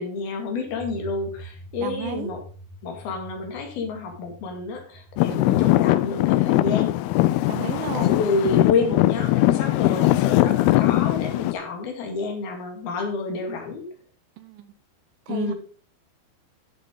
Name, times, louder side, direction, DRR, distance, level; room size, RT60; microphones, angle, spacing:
voice 1, 0.0-2.4 2.8-6.9 7.9-13.9 15.3-15.5, left 4 dB, 75° left, 4 dB, 4.0 m, -29 dB
sound 1, 0.6-7.2, right 1 dB, 15° right, 2.8 m, -45 dB
voice 2, 1.8-2.4 5.3-5.6 7.5-8.1 14.4-14.7 15.3-15.5, right 11 dB, 75° right, 11 dB, 2.1 m, -33 dB
Traffic noise roadway noise / Engine, 5.2-11.5, left 16 dB, 90° left, 2.6 m, -20 dB
11.5 x 7.9 x 3.8 m, 0.42 s
omnidirectional pair, 4.4 m